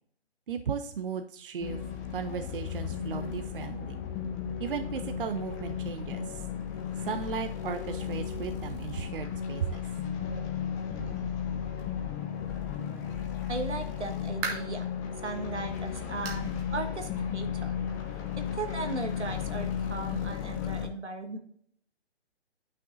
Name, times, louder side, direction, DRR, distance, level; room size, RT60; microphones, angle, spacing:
voice 1, 0.5-1.8 2.1-4.0 4.6-6.2 7.0-9.8, right 7 dB, 50° right, 8 dB, 0.6 m, -35 dB
sound 1, 1.6-20.9, left 8 dB, 15° left, 0.7 m, -34 dB
voice 2, 13.5-14.9 15.2-17.7 18.4-21.4, right 3 dB, 85° right, 5 dB, 1.5 m, -37 dB
sound 2, 14.4-14.9 15.4-15.5 16.2-16.5 16.8-16.9 17.4-17.5 18.6-18.7, right 4 dB, 15° right, 0.9 m, -37 dB
9.8 x 6.0 x 2.5 m, 0.64 s
figure-of-eight pair, 145°, 33 cm